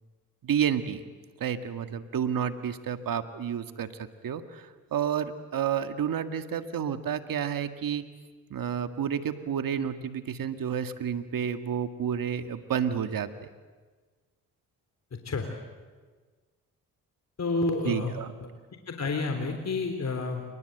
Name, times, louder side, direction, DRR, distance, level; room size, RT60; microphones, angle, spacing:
voice 1, 0.4-1.0 1.4-8.1 8.5-13.5 17.8-18.3, right 8 dB, 65° right, 8 dB, 2.0 m, -30 dB
voice 2, 17.4-18.2 18.9-20.4, left 3 dB, 45° left, 4 dB, 3.6 m, -29 dB
28.0 x 23.0 x 8.0 m, 1.4 s
supercardioid pair, 60°, 36 cm